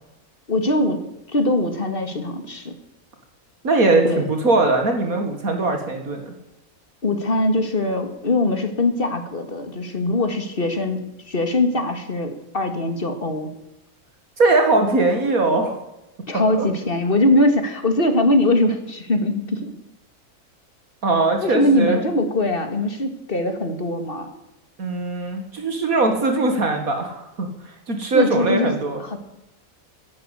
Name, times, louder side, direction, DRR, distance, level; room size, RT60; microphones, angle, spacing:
voice 1, 0.5-1.0 1.3-2.7 4.0-4.2 7.0-13.5 16.3-19.7 21.4-24.3 28.1-29.2, left 1 dB, 35° left, 6 dB, 2.3 m, -21 dB
voice 2, 3.6-6.3 14.4-15.8 16.5-16.7 21.0-22.0 24.8-29.0, right 3 dB, 65° right, 4 dB, 2.5 m, -20 dB
14.5 x 11.5 x 8.4 m, 0.93 s
omnidirectional pair, 1.6 m